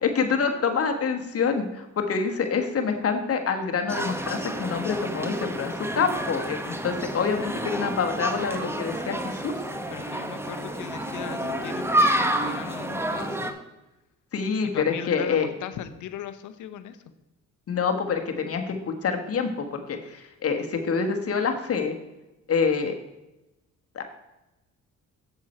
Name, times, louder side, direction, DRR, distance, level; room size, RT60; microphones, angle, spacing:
voice 1, 0.0-9.6 14.3-15.5 17.7-18.7 19.0-21.9 22.5-22.9 23.9-24.0, left 5 dB, 50° left, 6 dB, 1.4 m, -26 dB
sound 1, 3.9-13.5, right 1 dB, 10° right, 0.9 m, -29 dB
voice 2, 9.9-13.5 14.6-17.0, left 10 dB, 80° left, 10 dB, 0.8 m, -38 dB
7.8 x 7.3 x 4.3 m, 0.98 s
cardioid pair, 90°, 30 cm